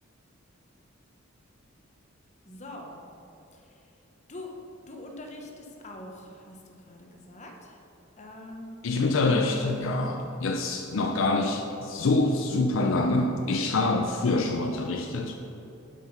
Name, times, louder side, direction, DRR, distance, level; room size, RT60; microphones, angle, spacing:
voice 1, 2.5-3.0 3.5-3.9 4.3-4.5 4.9-7.9 8.2-8.9, left 1 dB, 35° left, 1 dB, 1.0 m, -44 dB
voice 2, 8.8-15.3, left 2 dB, 70° left, 4 dB, 0.5 m, -26 dB
7.6 x 5.2 x 5.4 m, 2.8 s
head